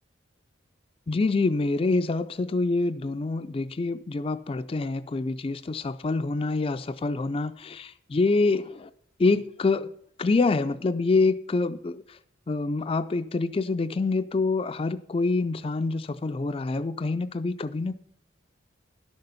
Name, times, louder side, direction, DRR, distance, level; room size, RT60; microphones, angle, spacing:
voice 1, 1.1-8.9 9.2-9.9 10.2-12.2 12.5-18.0, left 3 dB, 30° left, 0.3 m, -26 dB
11.5 x 6.7 x 5.6 m
head